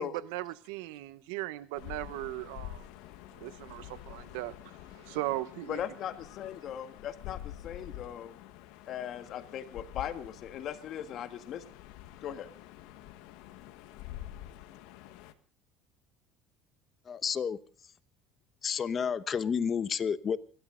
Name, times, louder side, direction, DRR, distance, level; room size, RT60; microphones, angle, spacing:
voice 1, 0.0-2.9 3.3-5.8, right 17 dB, 90° right, 0.9 m, -38 dB
sound 1, 1.8-15.3, left 13 dB, 80° left, 1.4 m, -47 dB
voice 2, 5.7-8.4 8.9-11.6 12.2-12.5, left 10 dB, 50° left, 1.7 m, -39 dB
voice 3, 17.1-17.6 18.6-20.4, left 6 dB, 30° left, 0.9 m, -30 dB
29.0 x 12.5 x 3.8 m
cardioid pair, 125°, 0 cm